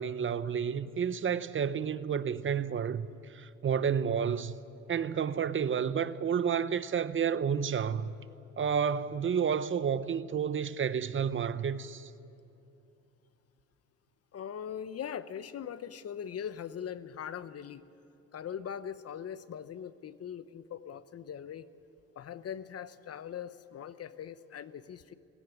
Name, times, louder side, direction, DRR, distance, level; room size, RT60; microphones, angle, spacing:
voice 1, 0.0-4.6 4.9-8.2 8.6-12.1, right 7 dB, 40° right, 0.8 m, -30 dB
voice 2, 14.3-17.8 18.3-21.7 22.2-25.1, left 8 dB, 55° left, 0.9 m, -41 dB
19.0 x 17.5 x 9.7 m
cardioid pair, 90°, 30 cm